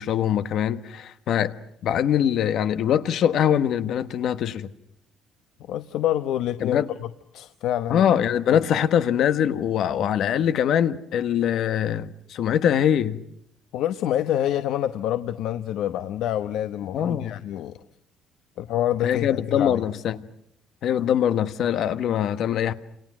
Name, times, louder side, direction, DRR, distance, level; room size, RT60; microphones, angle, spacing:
voice 1, 0.0-1.5 1.8-4.7 6.6-6.9 7.9-13.2 16.9-17.4 19.0-20.3 20.8-22.7, left 9 dB, 55° left, 1.3 m, -23 dB
voice 2, 5.7-7.1 7.3-8.1 8.5-8.6 13.7-17.8 18.6-19.8, left 11 dB, 75° left, 1.1 m, -27 dB
30.0 x 28.0 x 6.3 m
cardioid pair, 170°, 0 cm